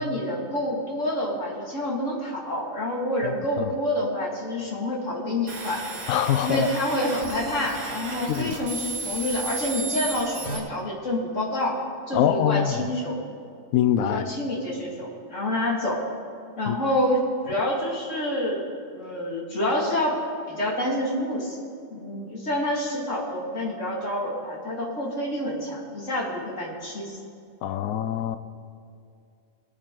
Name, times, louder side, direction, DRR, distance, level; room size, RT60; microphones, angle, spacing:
voice 1, 0.0-5.8 6.4-11.8 12.1-13.3 14.1-16.1 16.6-18.6 18.9-20.2 20.5-21.6 21.9-27.2, left 1 dB, 60° left, -3 dB, 2.7 m, -27 dB
sound 1, 5.5-10.6, right 3 dB, 85° right, 2.6 m, -34 dB
voice 2, 6.1-6.7 8.3-8.5 12.1-12.7 13.7-14.2 16.7-16.8 27.6-28.4, left 10 dB, 85° left, 12 dB, 1.1 m, -23 dB
21.0 x 8.7 x 3.8 m, 2.4 s
omnidirectional pair, 1.5 m